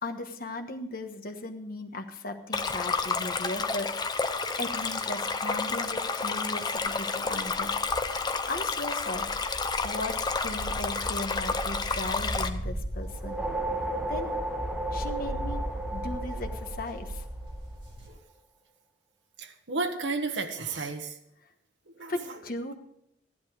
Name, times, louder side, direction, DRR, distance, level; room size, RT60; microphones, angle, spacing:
voice 1, 0.0-3.9 4.6-7.7 8.1-9.3 9.8-10.1 10.4-13.4 13.8-14.3 14.9-15.6 15.9-17.2 22.1-22.7, left 2 dB, 50° left, 5 dB, 1.4 m, -37 dB
Stream, 2.5-12.5, left 4 dB, 25° left, 0.7 m, -30 dB
sound 1, 6.8-18.1, right 1 dB, 25° right, 3.6 m, -38 dB
sound 2, 13.0-17.6, right 1 dB, 5° right, 1.3 m, -34 dB
voice 2, 19.4-21.2 22.0-22.4, right 3 dB, 80° right, 4 dB, 1.2 m, -33 dB
14.0 x 11.5 x 4.9 m, 0.79 s
head